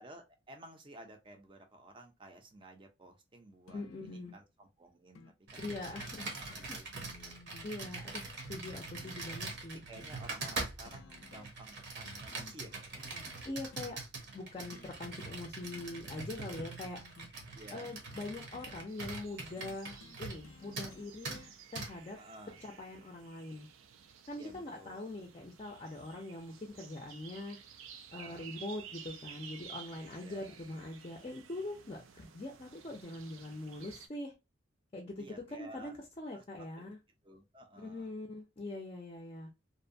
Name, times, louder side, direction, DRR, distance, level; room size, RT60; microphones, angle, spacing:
voice 1, 0.0-5.2 5.5-6.9 7.1-7.4 9.7-13.3 14.5-14.7 17.5-18.0 22.2-22.6 24.4-25.1 28.1-28.5 30.2-30.5 35.2-35.9 36.3-36.8 37.2-38.1, right 1 dB, 25° right, 0.5 m, -54 dB
sound 1, 3.7-4.3 5.1-5.3 5.6-5.8 6.1-9.1 10.0-10.6 10.8-11.7 12.0-13.9 14.7-14.9 15.2-15.4 15.6-16.3 16.5-18.7 19.6-21.5 22.6-22.7, left 4 dB, 90° left, 0.4 m, -57 dB
voice 2, 3.7-4.3 5.6-6.3 6.7-6.8 7.6-9.8 13.5-14.0 14.3-17.0 17.7-21.4 21.7-22.2 22.6-23.7 24.3-27.6 28.1-34.3 34.9-35.3 35.6-37.0 37.8-39.5, left 2 dB, 30° left, 0.4 m, -43 dB
Computer keyboard, 5.5-20.5 20.8-20.9 21.2-21.4 21.8-21.9, right 3 dB, 60° right, 0.8 m, -43 dB
sound 2, 18.9-34.1, right 7 dB, 85° right, 0.4 m, -54 dB
2.6 x 2.1 x 2.6 m
head